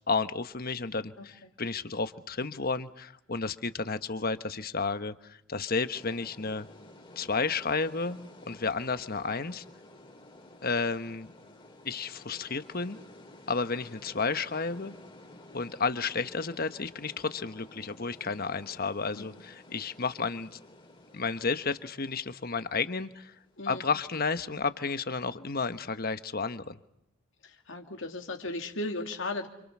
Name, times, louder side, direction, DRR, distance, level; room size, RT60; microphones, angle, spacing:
voice 1, 0.1-6.7 7.2-9.6 10.6-11.3 11.8-13.0 13.5-14.9 15.5-20.6 21.1-23.3 23.7-26.8, left 4 dB, 45° left, 11 dB, 1.2 m, -32 dB
voice 2, 1.2-1.5 19.2-19.4 23.6-23.8 27.4-29.5, left 2 dB, 60° left, 3 dB, 2.6 m, -36 dB
sound 1, 5.9-23.9, left 1 dB, 25° left, 3.1 m, -53 dB
29.0 x 27.0 x 6.2 m, 0.77 s
head